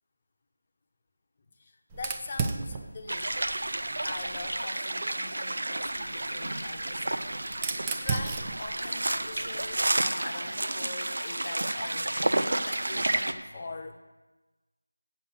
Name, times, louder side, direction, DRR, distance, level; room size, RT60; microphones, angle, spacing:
voice 1, 1.6-14.0, left 3 dB, 20° left, 3 dB, 0.6 m, -43 dB
Fire, 1.9-4.7 5.8-10.0, right 5 dB, 10° right, 0.3 m, -37 dB
sound 1, 3.1-13.3, right 1 dB, 55° right, 0.6 m, -31 dB
8.3 x 6.7 x 7.3 m, 1.2 s
figure-of-eight pair, 175°, 0 cm